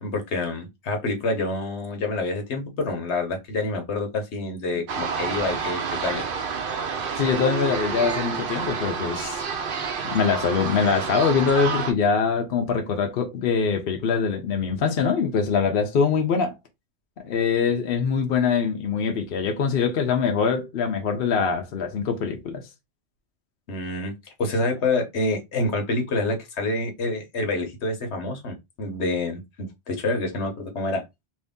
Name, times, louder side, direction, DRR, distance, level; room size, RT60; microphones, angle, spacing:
voice 1, 0.0-6.2 23.7-31.0, left 2 dB, 80° left, 1.2 m, -27 dB
sound 1, 4.9-11.9, right 5 dB, 60° right, 0.8 m, -29 dB
voice 2, 7.2-9.4 10.1-16.6 17.2-22.6, left 6 dB, 60° left, 0.8 m, -23 dB
2.9 x 2.7 x 3.5 m
omnidirectional pair, 1.1 m